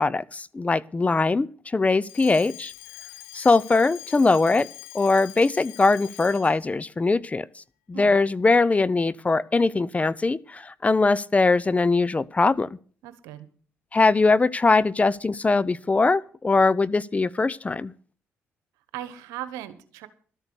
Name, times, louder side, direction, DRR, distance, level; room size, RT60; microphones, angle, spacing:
voice 1, 0.0-1.5 1.7-2.7 3.3-4.7 4.9-7.5 7.9-12.7 13.9-17.9, left 3 dB, 25° left, 0.6 m, -21 dB
Alarm, 2.0-6.7, left 15 dB, 90° left, 0.7 m, -44 dB
voice 2, 13.0-13.5 18.9-20.1, right 12 dB, 85° right, 1.2 m, -37 dB
13.0 x 8.1 x 7.1 m
supercardioid pair, 55°, 5 cm